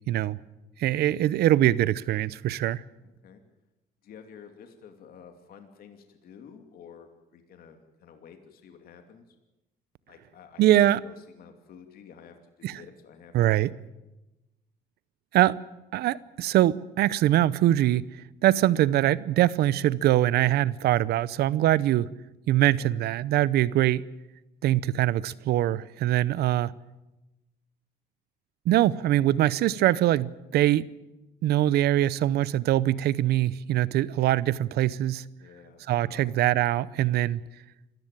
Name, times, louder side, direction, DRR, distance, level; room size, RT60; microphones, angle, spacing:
voice 1, 0.1-0.4 0.8-2.8 10.6-11.0 12.6-12.8 13.3-13.7 15.3-15.6 15.9-18.0 18.4-22.1 22.5-24.1 24.6-26.7 28.7-30.9 31.4-35.2 35.9-37.4, right 13 dB, 70° right, 0.8 m, -23 dB
voice 2, 3.0-3.4 4.0-9.4 10.1-13.6 22.7-23.0 32.0-32.4 35.4-36.3, left 7 dB, 60° left, 2.6 m, -51 dB
26.0 x 14.5 x 9.0 m
cardioid pair, 110°, 17 cm